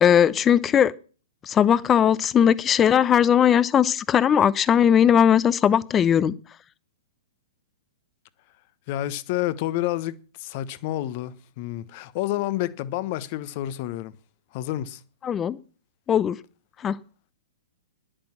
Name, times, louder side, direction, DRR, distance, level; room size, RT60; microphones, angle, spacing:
voice 1, 0.0-0.9 1.4-6.3 15.2-15.6 16.1-16.4 16.8-17.0, left 9 dB, 20° left, 0.8 m, -19 dB
voice 2, 8.9-14.1 14.5-15.0, left 14 dB, 45° left, 1.1 m, -29 dB
10.5 x 10.0 x 7.4 m
hypercardioid pair, 115°, 0 cm